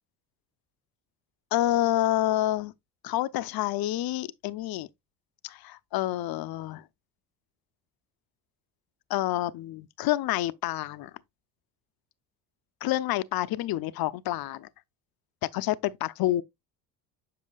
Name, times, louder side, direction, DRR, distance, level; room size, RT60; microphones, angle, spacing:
voice 1, 1.5-2.7 3.0-4.9 5.4-6.8 9.1-11.1 12.8-14.7 15.5-16.4, left 15 dB, 50° left, 0.6 m, -28 dB
7.5 x 5.9 x 2.3 m
hypercardioid pair, 65°, 47 cm